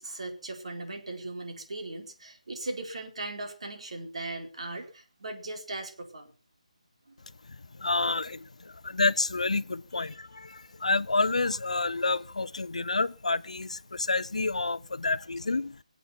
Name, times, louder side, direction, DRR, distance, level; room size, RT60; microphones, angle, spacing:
voice 1, 0.0-6.3 7.1-7.2 10.0-10.1, right 2 dB, 60° right, 4.6 m, -38 dB
voice 2, 7.7-15.8, left 3 dB, 65° left, 0.7 m, -29 dB
22.5 x 8.5 x 5.8 m
figure-of-eight pair, 150°, 4 cm